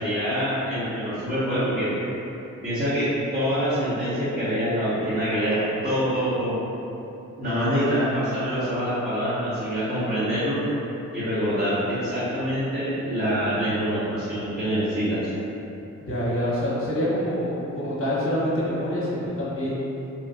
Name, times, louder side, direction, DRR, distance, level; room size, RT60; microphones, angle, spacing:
voice 1, 0.0-1.9 2.6-6.6 7.4-10.6 11.1-15.3, equal, 25° right, -15 dB, 1.2 m, -25 dB
voice 2, 16.0-19.8, equal, 40° left, -8 dB, 1.2 m, -26 dB
3.0 x 2.4 x 2.5 m, 2.9 s
cardioid pair, 60°, 33 cm